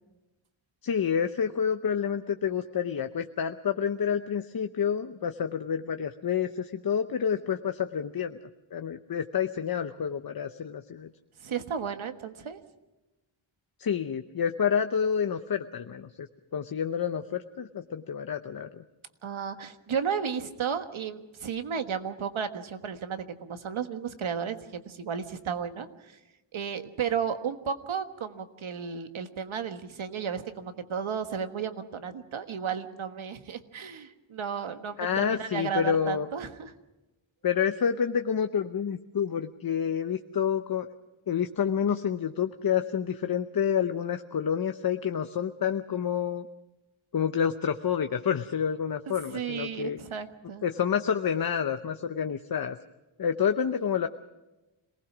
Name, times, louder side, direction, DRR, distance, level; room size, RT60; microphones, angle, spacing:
voice 1, 0.8-8.4 8.7-11.1 13.8-16.3 16.5-18.8 35.0-36.3 37.4-40.9 41.3-46.5 47.1-50.0 50.6-52.8 53.2-54.1, left 7 dB, 45° left, 7 dB, 0.8 m, -28 dB
voice 2, 11.4-12.6 19.2-26.2 26.5-36.7 49.1-50.6, right 7 dB, 75° right, 8 dB, 1.5 m, -33 dB
26.5 x 19.5 x 6.1 m, 1.0 s
wide cardioid pair, 150°, 49 cm